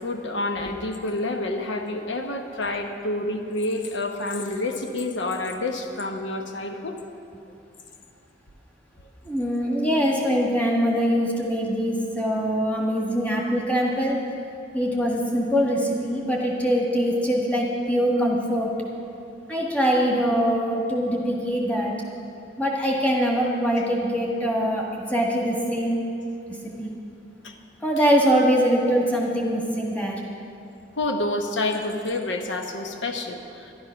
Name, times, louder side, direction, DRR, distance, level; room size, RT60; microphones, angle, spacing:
voice 1, 0.0-7.0 23.8-23.9 27.4-27.5 31.0-33.7, left 2 dB, 90° left, 4 dB, 1.0 m, -28 dB
voice 2, 9.2-14.2 14.7-18.7 19.5-21.9 22.6-26.0 26.8-26.9 27.8-30.2, equal, 10° left, -2 dB, 1.6 m, -23 dB
12.0 x 11.5 x 5.8 m, 2.6 s
head